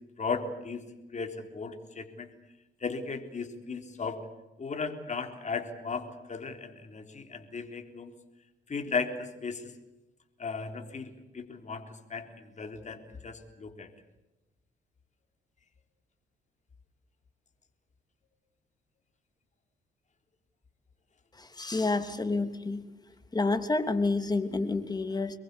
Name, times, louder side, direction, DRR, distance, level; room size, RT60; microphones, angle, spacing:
voice 1, 0.2-0.8 1.1-2.3 2.8-4.3 4.6-8.1 8.7-9.7 10.4-13.9, left 4 dB, 35° left, 5 dB, 3.7 m, -36 dB
voice 2, 21.4-22.8 23.3-25.4, left 3 dB, 20° left, 8 dB, 3.0 m, -29 dB
25.0 x 22.0 x 8.4 m, 1.0 s
cardioid pair, 90°, 20 cm